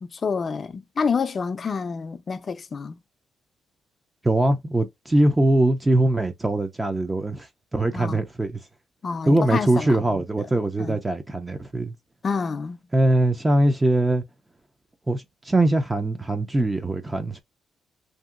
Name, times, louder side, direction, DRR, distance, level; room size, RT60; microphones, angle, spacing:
voice 1, 0.0-3.0 7.9-8.2 9.0-10.2 10.8-11.0 12.2-12.8, left 5 dB, 40° left, 0.5 m, -28 dB
voice 2, 4.2-8.6 9.3-11.9 12.9-14.2 15.1-17.4, right 1 dB, 15° right, 0.5 m, -22 dB
2.8 x 2.7 x 2.4 m
cardioid pair, 95°, 0 cm